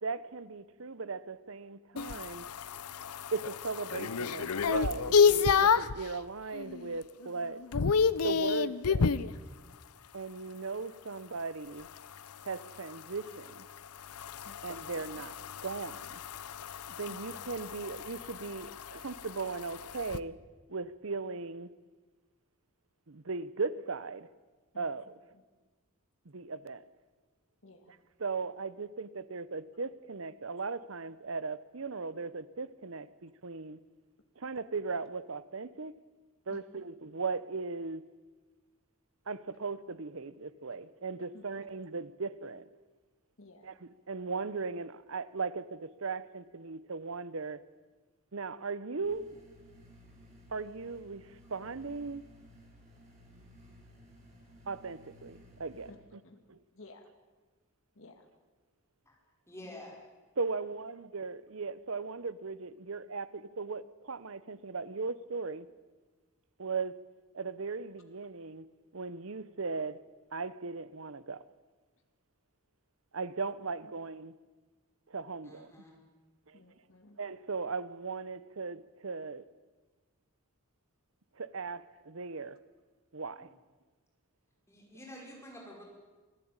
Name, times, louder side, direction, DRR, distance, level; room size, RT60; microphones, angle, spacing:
voice 1, 0.0-2.5 3.3-7.6 8.2-9.3 10.1-11.9 12.4-13.7 14.6-16.2 16.9-20.4 20.7-21.7 23.1-24.3 24.8-25.2 26.3-26.8 27.9-33.8 34.4-35.9 36.5-38.0 39.3-42.7 43.6-47.6 48.3-49.3 50.5-52.3 54.7-56.2 56.5-56.6 60.4-65.7 66.6-67.0 67.3-68.7 68.9-70.0 70.3-71.5 73.1-74.4 75.1-75.7 76.5-76.6 77.2-79.5 81.4-82.6 83.1-83.5, right 4 dB, 65° right, 0.9 m, -38 dB
sound 1, 2.0-6.0 6.5-6.9 7.2-9.3 11.8-20.2, left 5 dB, 90° left, 0.7 m, -30 dB
voice 2, 14.4-15.2 17.1-17.2 17.7-17.8 24.7-24.9 25.3-25.4 27.6-27.9 36.5-36.6 41.3-41.4 43.4-43.7 55.9-56.0 56.2-56.4 56.7-57.1 58.0-58.3 59.6-59.8 76.5-77.2, left 2 dB, 65° left, 2.0 m, -54 dB
sound 2, 49.0-55.9, equal, 35° right, 6.6 m, -57 dB
voice 3, 59.5-60.0 75.4-75.9 83.4-83.5 84.7-85.8, left 1 dB, 10° left, 5.2 m, -49 dB
25.5 x 15.0 x 8.9 m
head